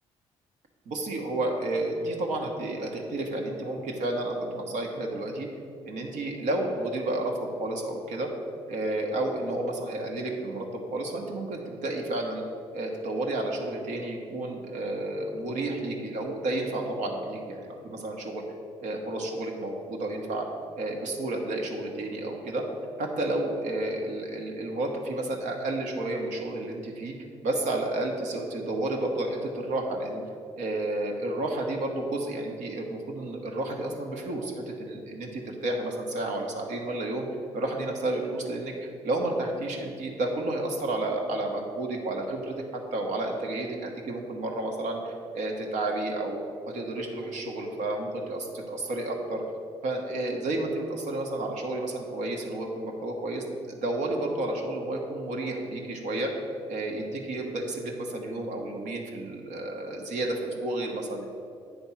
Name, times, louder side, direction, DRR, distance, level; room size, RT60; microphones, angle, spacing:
voice 1, 0.9-5.5 5.8-8.3 8.7-12.4 12.7-18.4 18.8-20.5 20.8-22.6 23.0-27.1 27.4-30.2 30.6-37.3 37.5-42.5 42.9-49.4 49.8-56.3 56.7-61.2, right 2 dB, 70° right, 1 dB, 1.2 m, -31 dB
8.3 x 3.5 x 5.7 m, 2.3 s
supercardioid pair, 65°, 13 cm